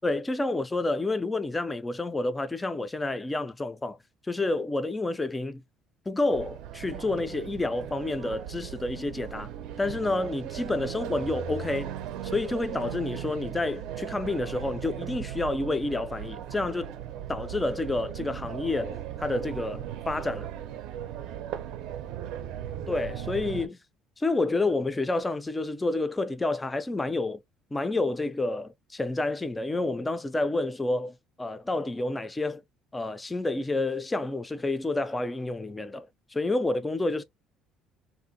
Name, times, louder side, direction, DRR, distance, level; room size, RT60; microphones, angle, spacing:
voice 1, 0.0-4.0 4.3-5.6 6.1-9.5 9.8-11.9 12.3-16.9 17.3-20.5 22.9-23.8 24.2-27.4 27.7-32.6 32.9-37.2, left 2 dB, 10° left, 0.3 m, -29 dB
sound 1, 6.3-23.7, right 10 dB, 65° right, 0.5 m, -37 dB
3.5 x 2.5 x 2.6 m
cardioid pair, 175°, 0 cm